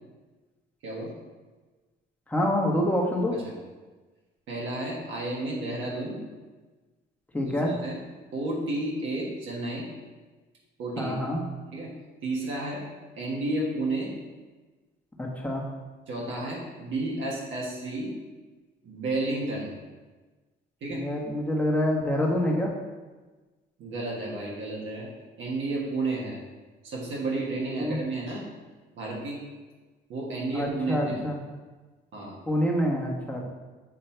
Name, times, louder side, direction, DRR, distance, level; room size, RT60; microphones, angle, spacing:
voice 1, 2.3-3.3 7.3-7.7 11.0-11.4 15.2-15.6 20.9-22.7 27.8-28.0 30.5-31.4 32.5-33.4, left 1 dB, 5° left, -2 dB, 1.2 m, -26 dB
voice 2, 4.5-6.2 7.4-8.0 8.3-9.9 10.8-11.1 11.7-11.9 12.2-12.8 13.1-14.1 16.1-18.1 18.8-19.7 20.8-21.0 23.8-25.1 25.4-26.4 26.8-28.5 29.0-29.4 30.1-31.2 32.1-32.4, right 2 dB, 75° right, -3 dB, 1.5 m, -31 dB
8.0 x 2.8 x 4.5 m, 1.3 s
cardioid pair, 90°, 20 cm